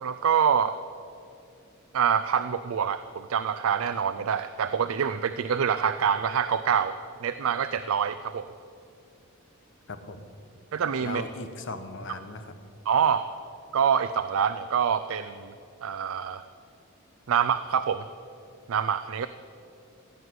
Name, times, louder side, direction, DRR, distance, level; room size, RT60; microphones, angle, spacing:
voice 1, 0.0-0.8 1.9-8.5 10.7-11.2 12.9-13.2 13.7-15.5 15.8-16.4 17.3-18.1 18.7-19.3, right 7 dB, 65° right, 11 dB, 0.4 m, -26 dB
voice 2, 9.9-10.3 11.0-12.5, left 2 dB, 60° left, 9 dB, 1.0 m, -38 dB
16.0 x 8.1 x 7.8 m, 2.6 s
head